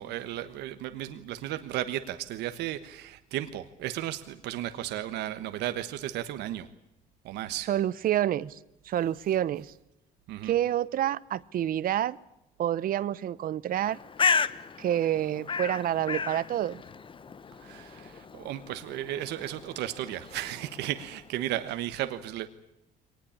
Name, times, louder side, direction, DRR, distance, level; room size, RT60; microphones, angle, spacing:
voice 1, 0.0-6.7 7.2-7.7 10.3-10.5 17.6-22.5, right 13 dB, 85° right, 1.3 m, -34 dB
voice 2, 7.7-8.6 8.8-9.7 10.4-12.2 12.6-14.0 14.8-16.8, right 11 dB, 60° right, 0.9 m, -28 dB
Bird, 13.7-21.3, left 5 dB, 30° left, 1.1 m, -34 dB
23.5 x 19.5 x 8.8 m
cardioid pair, 110°, 17 cm